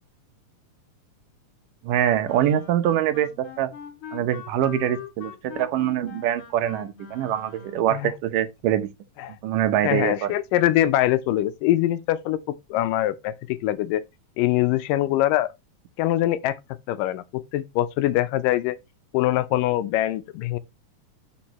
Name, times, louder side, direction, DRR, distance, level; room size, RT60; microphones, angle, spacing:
voice 1, 1.8-3.7 4.1-8.9 9.4-10.3, right 11 dB, 80° right, 2.6 m, -24 dB
Wind instrument woodwind instrument, 2.2-8.0, left 8 dB, 50° left, 1.9 m, -42 dB
voice 2, 9.8-14.0 14.4-15.5 16.0-16.6 16.9-18.8 19.1-20.6, left 14 dB, 90° left, 2.4 m, -23 dB
12.0 x 5.3 x 3.0 m
omnidirectional pair, 3.8 m